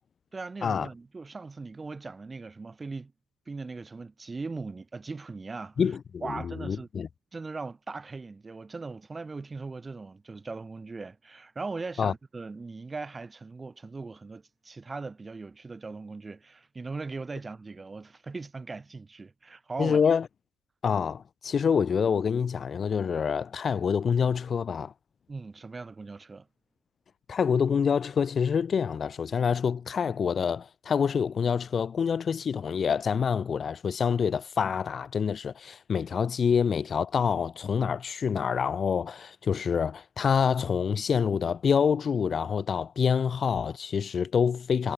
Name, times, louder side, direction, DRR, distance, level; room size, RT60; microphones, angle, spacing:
voice 1, 0.3-3.1 3.5-5.8 6.2-6.9 7.3-20.0 25.3-26.5, right 3 dB, 25° right, 0.5 m, -39 dB
voice 2, 5.8-7.1 12.0-12.1 19.8-20.3 20.8-24.9 27.3-44.9, left 6 dB, 40° left, 0.4 m, -26 dB
hypercardioid pair, 60°, 0 cm